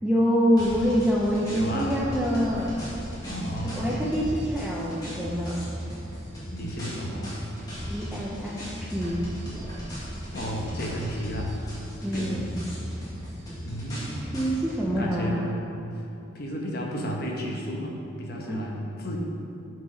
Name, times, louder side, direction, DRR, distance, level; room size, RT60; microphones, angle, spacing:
voice 1, 0.0-2.7 3.6-5.6 7.9-8.5 8.8-9.2 12.0-12.6 14.2-15.5 18.5-18.7, equal, 5° right, -6 dB, 0.5 m, -26 dB
sound 1, 0.6-14.8, equal, 20° left, 1.9 m, -36 dB
voice 2, 1.5-2.0 3.2-4.0 6.5-7.4 10.3-11.7 12.1-12.5 13.6-14.2 14.8-15.5 16.3-19.2, equal, 50° left, -1 dB, 1.1 m, -33 dB
7.9 x 4.9 x 5.1 m, 2.9 s
head